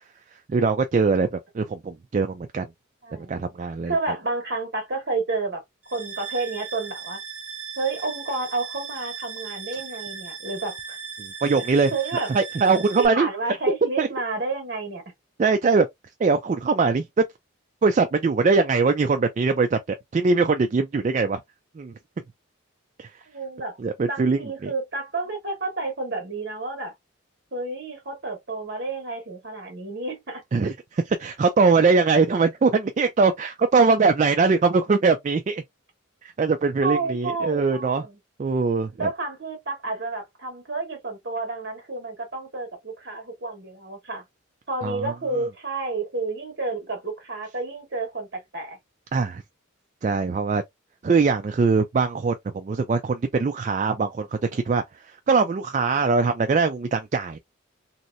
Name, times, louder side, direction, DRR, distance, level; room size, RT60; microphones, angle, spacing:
voice 1, 0.5-2.7 3.1-3.9 11.2-11.9 12.3-13.3 14.0-14.1 15.4-15.9 16.2-17.2 17.8-21.4 21.8-21.9 23.0-23.2 23.8-24.7 30.5-35.6 36.2-38.0 38.4-39.1 44.8-45.1 49.1-49.4 50.0-50.6 51.0-54.3 54.5-57.4, right 4 dB, 40° right, 0.3 m, -22 dB
voice 2, 3.0-3.4 3.9-5.6 5.9-7.2 7.8-11.0 11.9-12.3 13.0-15.0 23.3-23.8 24.0-26.9 27.5-30.4 36.8-38.2 39.0-44.2 44.7-48.8, right 3 dB, 55° right, 1.3 m, -30 dB
sound 1, 5.8-13.1, right 6 dB, 10° right, 1.2 m, -37 dB
3.1 x 2.8 x 2.5 m
head